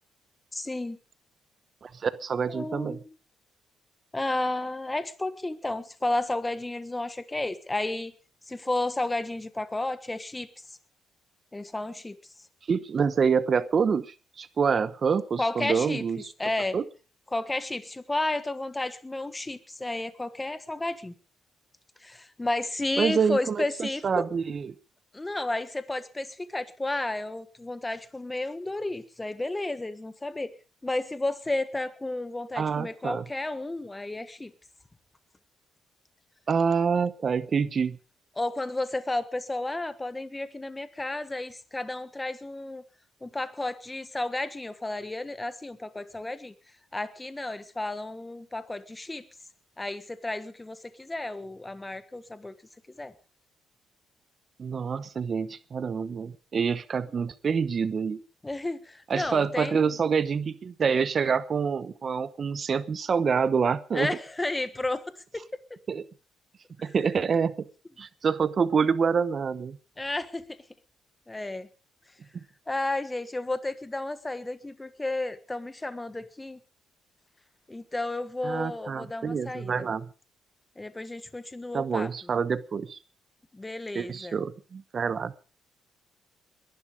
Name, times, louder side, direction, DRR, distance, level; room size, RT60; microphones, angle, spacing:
voice 1, 0.5-1.0 2.5-3.0 4.1-8.1 8.5-10.5 11.5-12.2 15.4-16.0 16.4-16.8 17.3-21.1 22.0-24.2 25.1-30.5 30.8-34.5 38.4-42.8 43.2-46.5 46.9-49.2 49.8-52.6 53.0-53.1 58.4-59.9 63.9-65.5 66.8-66.9 70.0-70.4 71.3-71.7 72.7-76.6 77.7-79.9 80.8-82.1 83.5-84.4, left 2 dB, 15° left, 12 dB, 1.4 m, -32 dB
voice 2, 1.8-3.0 12.7-16.3 16.7-16.8 23.0-24.7 32.6-33.2 36.5-38.0 54.6-58.2 59.1-64.1 65.9-66.0 66.8-67.5 68.0-69.8 78.4-80.1 81.7-83.0 83.9-85.3, right 6 dB, 45° right, 15 dB, 0.9 m, -27 dB
21.0 x 11.5 x 5.1 m, 0.36 s
cardioid pair, 95°, 0 cm